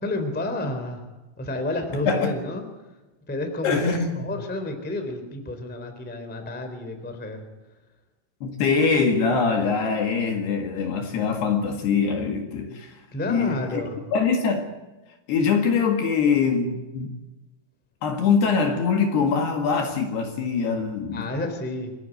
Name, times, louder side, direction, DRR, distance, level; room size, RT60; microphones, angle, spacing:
voice 1, 0.0-1.1 1.4-2.6 3.3-7.5 13.1-14.0 21.1-22.0, left 2 dB, 5° left, 2.2 m, -30 dB
voice 2, 3.6-4.3 8.4-13.0 13.2-13.8 14.1-14.7 15.3-17.1 18.0-21.3, left 5 dB, 60° left, 3.5 m, -23 dB
25.5 x 15.5 x 9.2 m
omnidirectional pair, 6.0 m